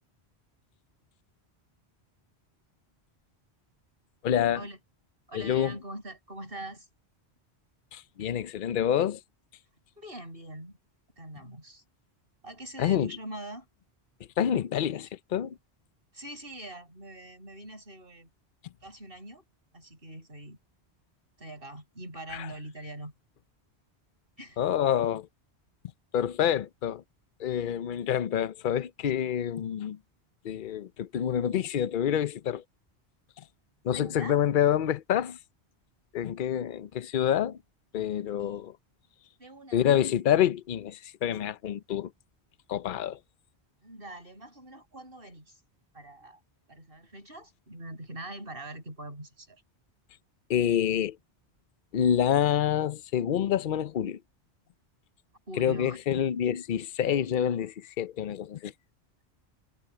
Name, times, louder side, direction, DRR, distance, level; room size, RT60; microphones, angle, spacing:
voice 1, 4.2-4.6 5.3-5.8 7.9-9.2 12.8-13.1 14.4-15.6 22.3-22.5 24.6-25.3 26.1-27.0 27.4-30.0 30.4-32.6 33.8-35.4 36.1-37.6 37.9-38.7 39.7-42.1 42.7-43.2 50.5-51.2 51.9-54.2 55.6-58.7, left 10 dB, 55° left, 0.8 m, -27 dB
voice 2, 5.3-6.9 10.0-10.8 11.2-11.8 12.4-13.7 16.1-18.3 18.8-19.4 19.7-20.6 21.4-23.1 24.4-24.6 33.9-34.4 38.4-38.6 39.4-40.1 43.8-45.6 45.9-46.4 46.7-49.6 55.5-56.0, right 1 dB, 55° right, 7.5 m, -43 dB
omnidirectional pair, 1.1 m